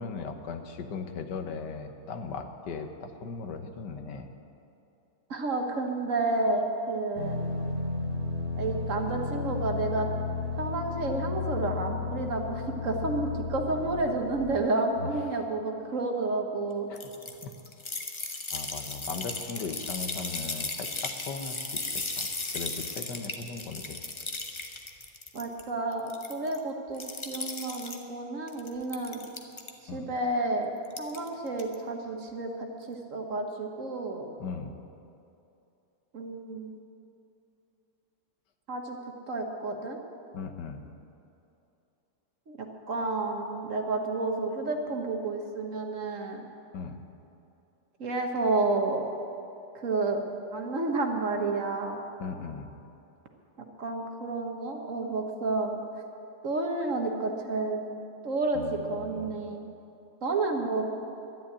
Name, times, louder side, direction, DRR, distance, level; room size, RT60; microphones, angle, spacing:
voice 1, 0.0-4.3 15.0-15.4 16.9-17.0 17.4-17.5 18.5-21.6 21.9-24.0 29.9-30.0 34.4-34.7 40.3-40.8 46.7-47.0 52.2-52.7 58.5-59.3, left 5 dB, 65° left, 6 dB, 1.6 m, -38 dB
voice 2, 5.3-7.4 8.6-10.1 10.6-16.9 25.3-29.2 29.9-30.7 31.0-34.3 36.1-36.7 38.7-39.0 39.3-40.0 42.5-42.6 42.9-46.4 48.0-49.1 49.8-50.2 50.5-52.0 53.8-55.8 56.4-57.8 58.2-59.7 60.2-60.8, right 2 dB, 45° right, 3 dB, 1.4 m, -30 dB
sound 1, 7.2-14.6, left 4 dB, 90° right, 2.4 m, -33 dB
sound 2, 17.0-25.6 25.9-26.6 27.0-28.0 28.5-29.7 30.8-31.3 31.6-31.7, left 3 dB, 30° left, 0.6 m, -36 dB
11.5 x 10.0 x 9.7 m, 2.8 s
omnidirectional pair, 2.0 m